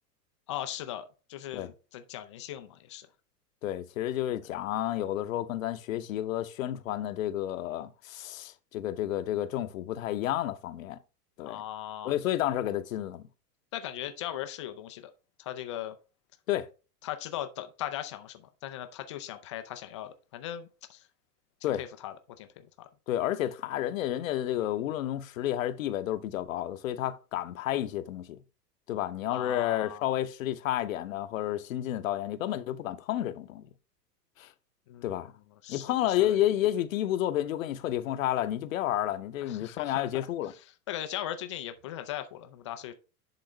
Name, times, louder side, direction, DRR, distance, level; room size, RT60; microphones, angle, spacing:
voice 1, 0.5-1.0 1.3-3.1 11.4-12.1 13.7-15.1 15.4-15.9 17.0-21.0 21.8-22.9 29.3-30.1 34.9-35.1 35.6-36.4 39.4-40.3 40.9-42.9, left 12 dB, 20° left, 0.3 m, -39 dB
voice 2, 3.6-11.0 11.4-11.6 12.0-13.2 16.5-16.7 21.6-21.8 23.1-28.4 28.9-33.7 34.4-34.5 35.0-35.3 35.7-40.5, left 12 dB, 55° left, 0.8 m, -31 dB
10.5 x 3.8 x 3.2 m
figure-of-eight pair, 95°, 47 cm